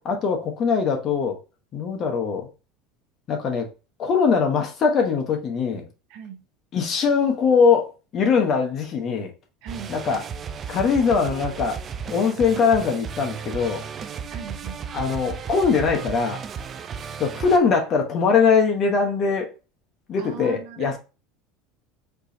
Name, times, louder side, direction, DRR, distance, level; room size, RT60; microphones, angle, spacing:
voice 1, 0.0-1.4 1.7-2.5 3.3-3.7 4.0-5.8 6.7-9.3 9.9-10.2 10.7-11.8 12.1-13.8 14.9-16.4 17.2-19.5 20.1-21.0, left 5 dB, 35° left, 1.1 m, -21 dB
voice 2, 6.1-6.4 9.6-9.9 14.3-14.8 20.2-21.0, right 8 dB, 65° right, 1.1 m, -38 dB
sound 1, 9.7-17.6, right 6 dB, 30° right, 0.4 m, -34 dB
4.5 x 3.2 x 2.8 m
supercardioid pair, 140°, 0 cm